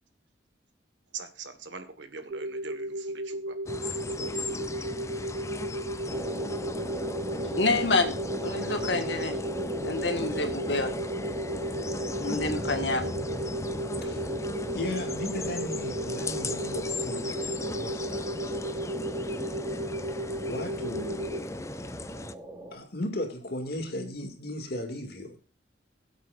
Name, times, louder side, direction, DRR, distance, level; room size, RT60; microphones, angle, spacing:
voice 1, 1.1-3.6, right 5 dB, 75° right, 1.6 m, -42 dB
sound 1, 2.3-21.4, right 1 dB, 45° right, 0.5 m, -35 dB
sound 2, 3.7-22.4, left 2 dB, 15° left, 0.4 m, -38 dB
sound 3, 6.1-22.8, right 1 dB, 15° right, 1.9 m, -39 dB
voice 2, 7.3-9.4 9.8-10.9 12.2-13.1, left 3 dB, 75° left, 1.8 m, -28 dB
voice 3, 14.7-19.2 20.5-21.3 22.7-25.4, left 1 dB, 55° left, 2.4 m, -36 dB
21.0 x 8.2 x 2.6 m
head